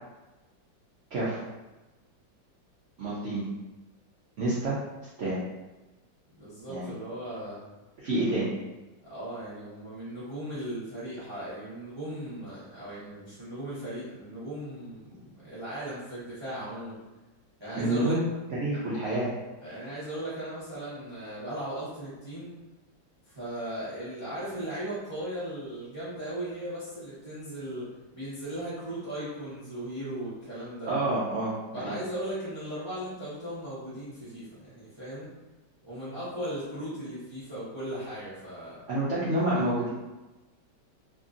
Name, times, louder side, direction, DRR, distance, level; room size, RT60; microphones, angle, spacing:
voice 1, 1.1-1.4 3.0-3.5 4.4-4.8 5.2-5.4 6.7-6.9 8.0-8.5 17.8-18.2 18.5-19.3 30.9-31.9 38.9-39.9, right 1 dB, 80° right, -8 dB, 0.6 m, -28 dB
voice 2, 6.4-7.6 9.0-17.0 17.6-18.2 19.6-22.5 23.2-30.9 31.7-35.3 35.9-38.8, right 1 dB, 30° right, -11 dB, 0.4 m, -37 dB
2.9 x 2.6 x 2.4 m, 1.1 s
omnidirectional pair, 2.0 m